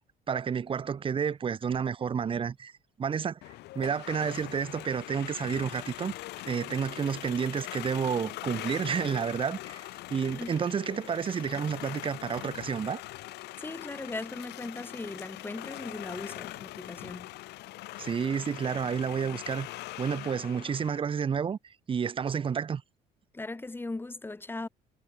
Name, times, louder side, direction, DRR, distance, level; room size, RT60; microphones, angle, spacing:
voice 1, 0.3-2.7 3.0-3.4 3.7-6.1 6.5-13.0 18.0-19.7 20.0-21.6 21.9-22.8, right 7 dB, 30° right, 0.8 m, -30 dB
sound 1, 3.4-21.0, left 18 dB, 80° left, 0.9 m, -42 dB
voice 2, 13.6-17.3 23.3-24.7, left 2 dB, 15° left, 2.4 m, -38 dB
cardioid pair, 110°, 17 cm